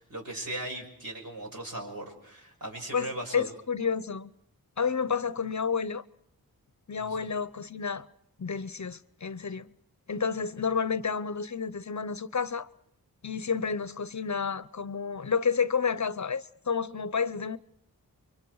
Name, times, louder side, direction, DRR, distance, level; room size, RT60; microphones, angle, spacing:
voice 1, 0.0-3.5 7.0-7.3, right 1 dB, 65° right, 6.2 m, -38 dB
voice 2, 2.9-4.3 4.8-6.0 6.9-8.1 8.4-9.7 10.1-12.7 13.2-17.6, left 6 dB, 50° left, 0.8 m, -30 dB
30.0 x 24.0 x 4.8 m
wide cardioid pair, 75°, 36 cm